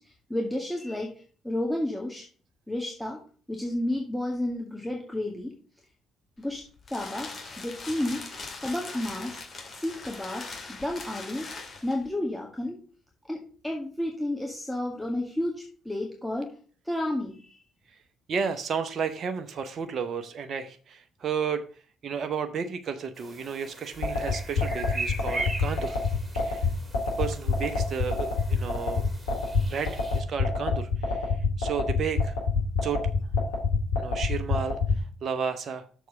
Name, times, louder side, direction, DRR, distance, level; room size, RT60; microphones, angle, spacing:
voice 1, 0.0-2.3 2.7-3.2 3.5-5.6 6.4-6.6 6.9-8.3 8.6-9.4 9.7-11.5 11.8-12.8 13.2-16.5 16.8-17.6, left 1 dB, 5° left, -1 dB, 1.9 m, -31 dB
sound 1, 6.4-12.1, left 3 dB, 40° left, 2.3 m, -41 dB
voice 2, 18.3-21.6 22.0-26.0 26.3-26.7 27.2-29.0 29.7-31.3 31.6-32.4 32.8-33.0 34.0-34.8 35.2-35.9, right 6 dB, 50° right, 8 dB, 0.8 m, -32 dB
sound 2, 23.2-30.2, right 3 dB, 20° right, 2.5 m, -40 dB
sound 3, 24.0-35.0, left 4 dB, 80° left, 2.2 m, -25 dB
6.7 x 4.6 x 6.5 m, 0.41 s
hypercardioid pair, 45°, 0 cm